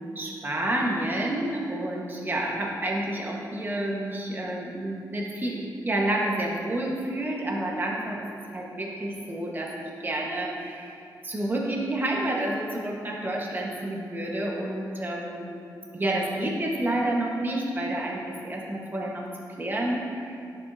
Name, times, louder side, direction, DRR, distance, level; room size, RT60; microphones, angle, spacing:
voice 1, 0.0-15.6 15.9-19.3 19.6-20.4, right 1 dB, 30° right, -2 dB, 1.3 m, -29 dB
10.5 x 7.3 x 2.7 m, 2.6 s
wide cardioid pair, 110°, 7 cm